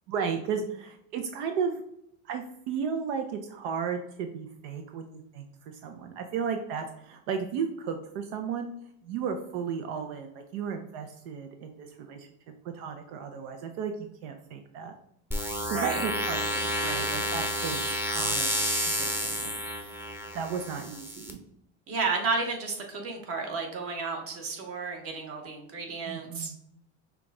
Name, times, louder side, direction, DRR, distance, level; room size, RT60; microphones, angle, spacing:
voice 1, 0.1-1.8 2.2-8.7 9.0-12.3 12.6-14.9 15.7-18.6 18.8-19.6 20.3-21.4 26.1-26.6, right 6 dB, 85° right, 5 dB, 0.6 m, -34 dB
sound 1, 15.3-21.3, equal, 5° right, 0.7 m, -30 dB
voice 2, 15.7-16.1 21.9-26.5, right 4 dB, 45° right, 2 dB, 1.3 m, -32 dB
5.8 x 2.4 x 3.7 m, 0.74 s
supercardioid pair, 120°, 32 cm